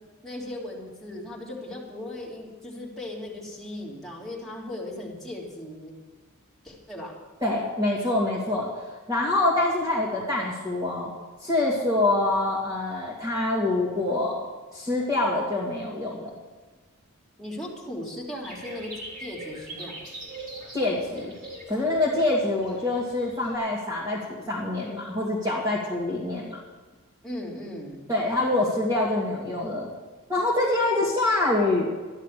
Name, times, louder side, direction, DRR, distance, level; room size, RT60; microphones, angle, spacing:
voice 1, 0.2-5.9 6.6-7.1 17.4-18.9 19.2-20.1 27.2-28.0, left 1 dB, ahead, -5 dB, 3.3 m, -37 dB
voice 2, 7.4-8.7 9.1-11.1 11.4-14.4 14.7-16.3 20.7-21.3 21.7-26.6 28.1-29.9 30.3-31.9, left 2 dB, 15° right, -4 dB, 2.4 m, -25 dB
sound 1, 18.4-23.6, right 2 dB, 40° right, 4.1 m, -41 dB
13.0 x 11.5 x 6.7 m, 1.3 s
head